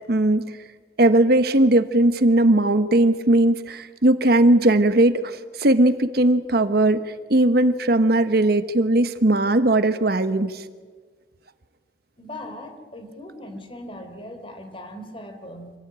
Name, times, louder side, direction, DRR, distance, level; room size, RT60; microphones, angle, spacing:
voice 1, 0.1-0.6 1.0-10.6, right 1 dB, 60° right, 11 dB, 1.1 m, -18 dB
voice 2, 12.2-15.7, left 1 dB, 30° left, 6 dB, 3.5 m, -39 dB
26.5 x 17.0 x 8.9 m, 1.5 s
head